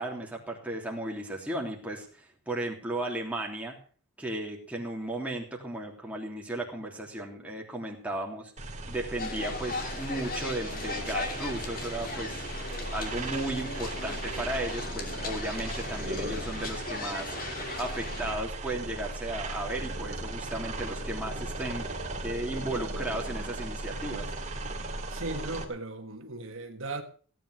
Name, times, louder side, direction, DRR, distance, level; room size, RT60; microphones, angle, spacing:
voice 1, 0.0-3.8 4.2-8.5 8.9-12.4 12.9-17.4 17.8-21.9 22.2-24.3, right 1 dB, 5° right, 3.2 m, -35 dB
sound 1, 8.6-25.6, right 2 dB, 30° right, 2.3 m, -37 dB
sound 2, 9.2-18.3, left 3 dB, 40° left, 2.6 m, -38 dB
voice 2, 25.1-27.0, right 2 dB, 60° right, 1.6 m, -37 dB
17.0 x 9.3 x 6.5 m
head